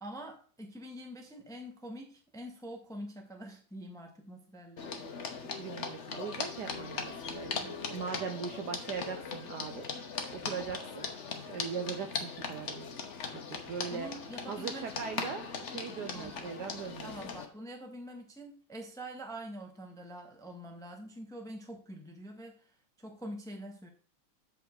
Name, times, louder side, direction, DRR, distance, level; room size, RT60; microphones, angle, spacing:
voice 1, 0.0-5.1 13.9-15.2 16.1-16.5 17.0-22.6 23.0-23.9, right 1 dB, ahead, 3 dB, 0.9 m, -45 dB
sound 1, 4.8-17.5, left 5 dB, 45° left, 1.0 m, -39 dB
voice 2, 5.6-9.9 10.3-11.1 11.5-12.9 13.3-13.4 13.7-14.1 14.5-17.1, right 6 dB, 65° right, 6 dB, 1.1 m, -40 dB
7.7 x 6.8 x 3.9 m, 0.43 s
omnidirectional pair, 2.2 m